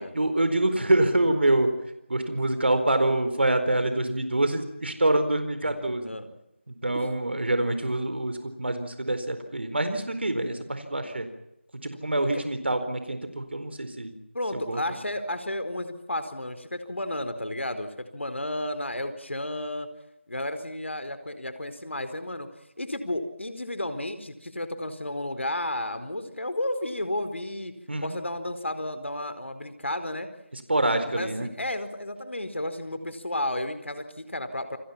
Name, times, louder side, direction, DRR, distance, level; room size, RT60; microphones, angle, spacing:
voice 1, 0.0-1.7 2.1-6.1 6.7-11.3 11.8-14.1 14.5-14.8 27.9-28.2 30.7-31.5, right 1 dB, 60° right, 9 dB, 4.4 m, -26 dB
voice 2, 14.3-19.9 20.3-22.5 22.8-27.7 28.0-30.3 31.1-34.8, left 1 dB, 75° left, 10 dB, 4.6 m, -32 dB
29.0 x 22.5 x 5.9 m, 0.84 s
figure-of-eight pair, 175°, 7 cm